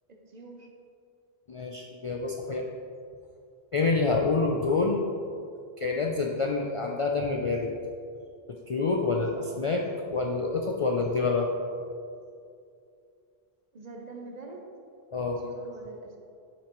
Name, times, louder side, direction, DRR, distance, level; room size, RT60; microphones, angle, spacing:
voice 1, 0.1-0.7 9.3-9.5 13.7-14.6 15.4-16.2, right 3 dB, 45° right, 1 dB, 0.8 m, -45 dB
voice 2, 1.5-2.6 3.7-5.0 5.8-7.7 8.7-11.5 15.1-15.4, left 3 dB, 50° left, 0 dB, 0.4 m, -27 dB
8.1 x 6.0 x 3.0 m, 2.4 s
omnidirectional pair, 1.0 m